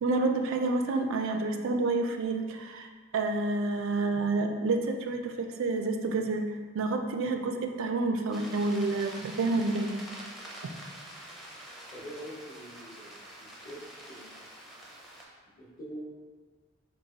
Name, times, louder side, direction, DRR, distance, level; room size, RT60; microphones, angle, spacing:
voice 1, 0.0-6.4 6.7-10.0, right 3 dB, 65° right, 5 dB, 0.3 m, -29 dB
sound 1, 8.3-15.2, right 1 dB, ahead, 0.5 m, -46 dB
voice 2, 11.9-13.8 14.1-14.6 15.6-16.0, equal, 45° left, -5 dB, 0.9 m, -45 dB
4.5 x 2.7 x 2.8 m, 1.5 s
head